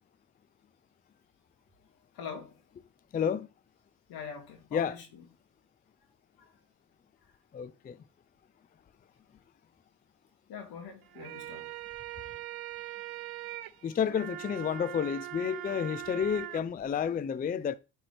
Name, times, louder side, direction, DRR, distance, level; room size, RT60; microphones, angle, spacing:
voice 1, 2.2-2.5 4.1-5.1 10.5-11.7, left 6 dB, 80° left, 2.3 m, -42 dB
voice 2, 3.1-3.5 4.7-5.0 7.5-8.0 13.8-17.7, left 7 dB, 25° left, 0.4 m, -30 dB
sound 1, 11.0-16.6, right 16 dB, 70° right, 0.7 m, -41 dB
8.8 x 4.5 x 3.3 m
cardioid pair, 90°, 37 cm